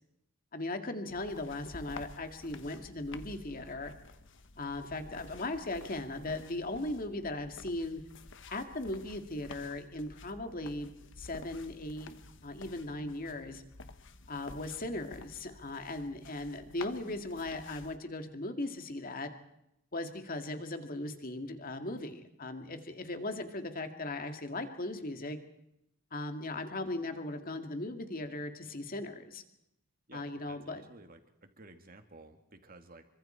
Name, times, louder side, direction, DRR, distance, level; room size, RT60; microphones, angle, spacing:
voice 1, 0.5-3.9 4.6-8.0 8.5-12.2 12.4-13.6 14.3-19.3 19.9-25.4 26.1-29.4 30.1-30.8, left 2 dB, 40° left, 6 dB, 2.2 m, -38 dB
sound 1, 1.1-18.0, left 3 dB, 60° left, 1.3 m, -51 dB
voice 2, 30.1-33.1, right 2 dB, 45° right, 6 dB, 2.4 m, -54 dB
27.5 x 24.5 x 4.5 m, 0.82 s
head